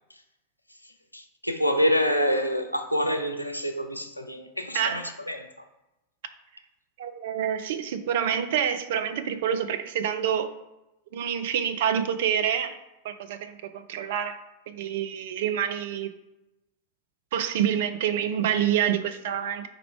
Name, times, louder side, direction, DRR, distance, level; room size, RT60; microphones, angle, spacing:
voice 1, 1.1-5.5, equal, 90° left, 6 dB, 0.4 m, -26 dB
voice 2, 7.0-10.5 11.1-12.8 13.0-14.4 14.7-16.1 17.3-19.7, right 9 dB, 55° right, 9 dB, 0.4 m, -27 dB
3.9 x 2.9 x 4.6 m, 0.95 s
figure-of-eight pair, 90°, 0 cm